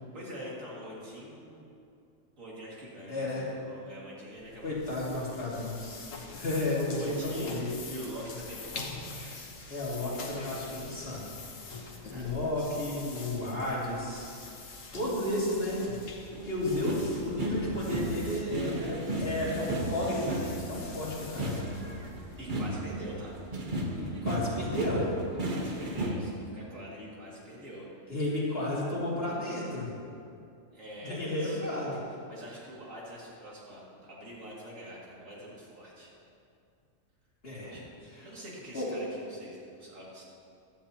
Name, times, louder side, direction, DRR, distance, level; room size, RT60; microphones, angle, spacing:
voice 1, 0.1-1.7 2.4-5.0 6.9-9.4 11.9-12.3 22.4-23.4 25.4-28.1 30.7-31.6 32.3-36.1 37.7-40.2, equal, 80° right, -6 dB, 2.8 m, -45 dB
voice 2, 3.1-3.4 4.6-6.1 6.3-7.7 9.7-11.3 12.0-14.3 14.9-15.9 16.5-21.6 24.0-25.1 28.1-29.9 31.0-32.0 37.4-37.8 38.7-38.9, left 1 dB, 50° left, -7 dB, 2.9 m, -32 dB
sound 1, 4.4-22.8, left 4 dB, 80° left, 1.4 m, -45 dB
sound 2, 16.3-26.1, right 1 dB, 40° right, 1.1 m, -34 dB
15.0 x 11.5 x 2.9 m, 2.5 s
omnidirectional pair, 1.3 m